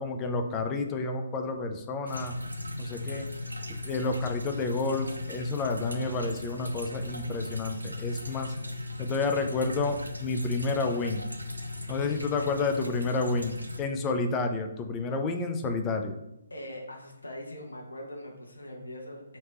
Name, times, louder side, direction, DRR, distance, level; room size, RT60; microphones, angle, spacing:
voice 1, 0.0-2.3 2.8-3.3 3.8-8.5 9.0-11.3 11.9-16.2, left 3 dB, 20° left, 5 dB, 0.4 m, -30 dB
sound 1, 2.1-13.8, left 2 dB, 85° right, 0.5 m, -37 dB
voice 2, 11.8-12.5 16.5-19.2, left 1 dB, 75° left, -1 dB, 0.9 m, -42 dB
3.2 x 2.8 x 4.2 m, 0.85 s
figure-of-eight pair, 135°, 0 cm